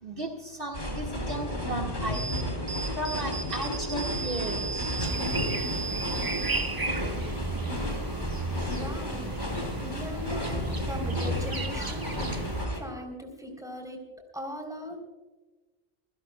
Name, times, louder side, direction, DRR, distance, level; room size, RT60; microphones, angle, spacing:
voice 1, 0.0-2.2 2.9-4.9, right 1 dB, 60° right, 0 dB, 2.0 m, -35 dB
sound 1, 0.7-12.8, left 1 dB, 45° left, 3.3 m, -33 dB
sound 2, 2.1-8.5, right 5 dB, 15° left, 3.1 m, -37 dB
sound 3, 5.0-12.6, right 2 dB, 25° right, 0.8 m, -34 dB
voice 2, 8.5-9.3 9.8-12.1 12.7-14.0 14.3-15.0, equal, 5° right, 2 dB, 3.5 m, -39 dB
26.5 x 16.0 x 2.2 m, 1.2 s
omnidirectional pair, 1.1 m